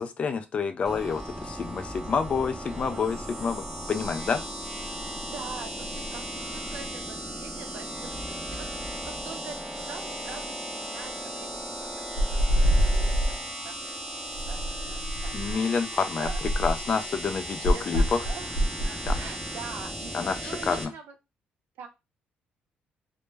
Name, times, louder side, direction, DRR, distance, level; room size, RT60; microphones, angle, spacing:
voice 1, 0.0-4.4 15.3-18.2 19.1-19.2 20.1-20.9, left 5 dB, 35° left, 8 dB, 0.3 m, -28 dB
sound 1, 0.8-20.8, equal, 10° right, 0.6 m, -36 dB
voice 2, 2.6-3.1 5.1-8.7 9.0-13.4 13.6-13.8 14.5-15.7 16.2-16.4 17.7-21.1 21.8-21.9, right 5 dB, 75° right, 5 dB, 0.5 m, -44 dB
sound 2, 12.2-13.4 14.3-15.6 16.2-16.9 17.6-19.3, equal, 90° left, 0.5 m, -25 dB
2.1 x 2.0 x 3.2 m, 0.25 s
cardioid pair, 135°, 3 cm